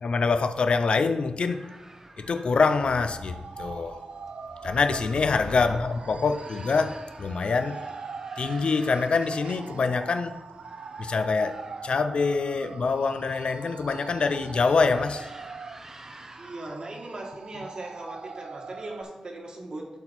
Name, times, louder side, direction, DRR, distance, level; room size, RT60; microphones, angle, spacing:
voice 1, 0.0-1.6 2.2-4.0 4.6-7.8 8.4-10.3 11.0-11.6 11.8-15.3, left 4 dB, 55° left, 9 dB, 0.4 m, -25 dB
sound 1, 1.5-16.8, right 2 dB, 25° right, 0.7 m, -50 dB
sound 2, 2.9-19.0, right 5 dB, 75° right, 0.4 m, -42 dB
voice 2, 5.5-5.9 16.4-19.9, right 2 dB, 40° right, 1 dB, 1.5 m, -39 dB
11.5 x 4.4 x 4.3 m, 1.1 s
wide cardioid pair, 170°, 2 cm